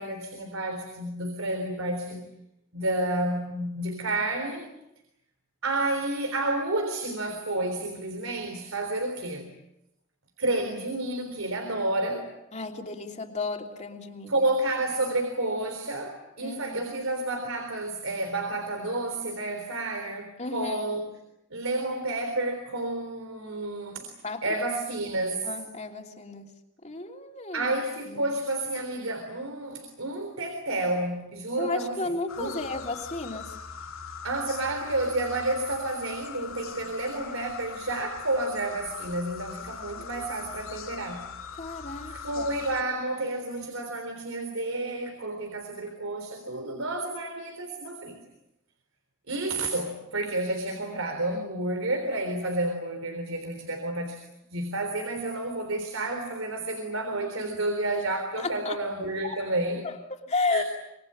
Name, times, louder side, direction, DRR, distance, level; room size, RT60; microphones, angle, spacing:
voice 1, 0.0-2.3 2.7-4.7 5.6-9.5 10.4-12.3 14.3-21.1 21.5-24.1 24.4-25.5 27.5-32.6 34.2-41.3 42.1-48.2 49.3-54.2 54.5-59.9 60.5-60.6, right 2 dB, 85° right, 5 dB, 3.8 m, -30 dB
voice 2, 12.5-14.4 16.4-16.9 20.4-20.8 24.2-24.5 25.4-26.6 26.8-27.7 28.1-28.3 31.6-33.6 40.1-40.3 41.6-42.5 58.4-58.8 59.2-59.4 59.8-60.6, left 3 dB, 35° left, 3 dB, 3.1 m, -33 dB
sound 1, 32.3-42.8, left 6 dB, 80° left, 2.5 m, -41 dB
25.5 x 23.0 x 8.7 m, 0.86 s
head